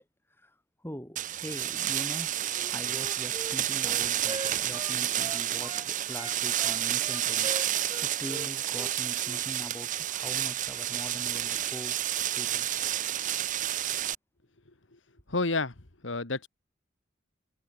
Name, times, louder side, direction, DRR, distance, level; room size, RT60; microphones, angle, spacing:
voice 1, 0.8-2.4 2.7-7.5 8.0-12.7, equal, 10° left, 6.9 m, -43 dB
sound 1, 1.2-14.2, right 12 dB, 40° right, 0.6 m, -30 dB
Wind instrument woodwind instrument, 2.5-5.9 6.1-9.4, right 2 dB, 25° right, 2.1 m, -42 dB
voice 2, 15.3-15.7 16.0-16.5, left 3 dB, 80° left, 2.0 m, -29 dB
head